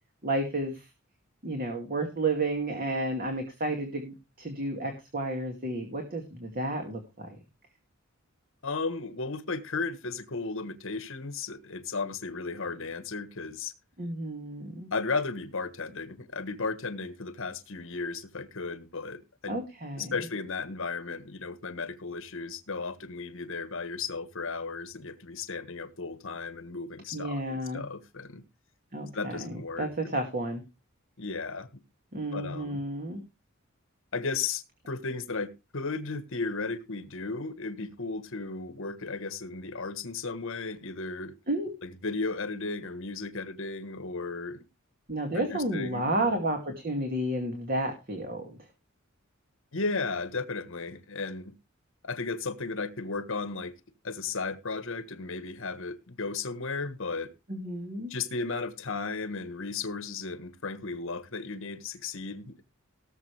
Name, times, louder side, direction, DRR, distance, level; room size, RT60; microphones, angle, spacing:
voice 1, 0.2-0.9 1.4-7.4 14.0-14.9 19.5-20.2 27.1-27.8 28.9-30.6 32.1-33.2 41.5-41.7 45.1-48.6 57.5-58.1, right 1 dB, 45° right, 2.4 m, -31 dB
voice 2, 8.6-13.7 14.9-19.6 20.0-28.4 29.1-30.2 31.2-31.7 32.3-32.8 34.1-41.3 41.8-44.6 45.3-46.1 49.7-51.5 52.0-53.8 54.0-57.3 58.1-62.6, left 4 dB, 65° left, 1.4 m, -35 dB
18.0 x 7.2 x 3.4 m
head